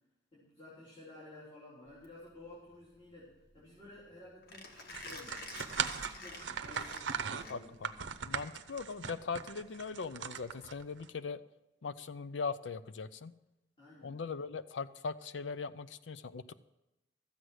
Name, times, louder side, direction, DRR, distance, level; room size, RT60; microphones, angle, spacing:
voice 1, 0.3-5.4 6.0-8.0 13.8-14.2, left 1 dB, 35° left, -8 dB, 3.7 m, -54 dB
Mechanisms, 1.9-8.0, left 3 dB, 60° left, 1.5 m, -49 dB
sound 1, 4.9-11.1, right 7 dB, 90° right, 0.7 m, -39 dB
voice 2, 8.2-11.4 11.8-13.3 14.0-16.5, left 4 dB, 85° left, 14 dB, 0.5 m, -40 dB
13.5 x 8.2 x 6.3 m, 0.96 s
head